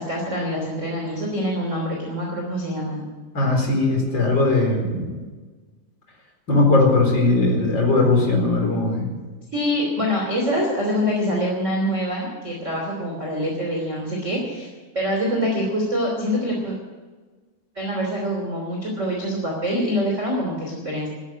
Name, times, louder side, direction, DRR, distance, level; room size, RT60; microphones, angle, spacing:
voice 1, 0.0-3.0 9.5-16.7 17.7-21.1, equal, 20° right, -1 dB, 3.2 m, -25 dB
voice 2, 3.3-5.1 6.5-9.1, left 2 dB, 30° left, 0 dB, 4.7 m, -19 dB
13.5 x 13.5 x 7.6 m, 1.4 s
omnidirectional pair, 4.3 m